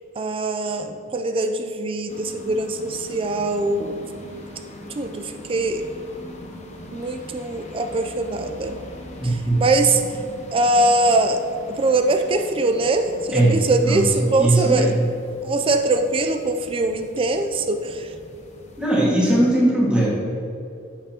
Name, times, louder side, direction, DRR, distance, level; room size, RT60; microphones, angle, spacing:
voice 1, 0.2-4.1 4.9-5.8 6.9-8.8 9.2-10.0 10.5-11.4 11.8-14.9 15.4-18.1, right 2 dB, 25° right, 6 dB, 0.3 m, -22 dB
sound 1, 2.1-19.0, left 1 dB, 35° left, 0.7 m, -41 dB
voice 2, 9.2-9.6 13.3-13.5 13.8-14.9 18.8-20.1, right 1 dB, 5° right, -6 dB, 1.7 m, -19 dB
8.8 x 6.6 x 2.9 m, 2.6 s
head